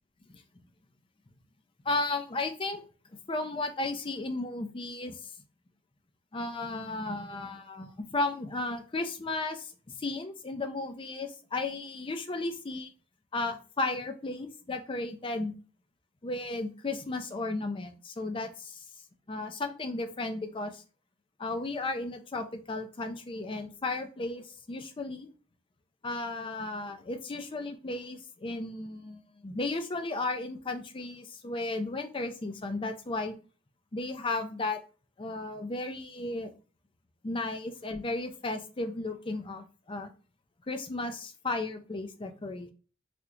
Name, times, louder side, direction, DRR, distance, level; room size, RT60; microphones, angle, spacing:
voice 1, 1.8-2.8 3.3-5.2 6.3-9.7 10.0-12.9 13.3-15.5 16.2-18.8 19.3-20.8 21.4-25.3 26.0-33.4 33.9-34.8 35.2-36.5 37.2-40.1 40.7-42.7, left 2 dB, 25° left, 7 dB, 0.5 m, -34 dB
3.4 x 2.8 x 2.5 m, 0.37 s
head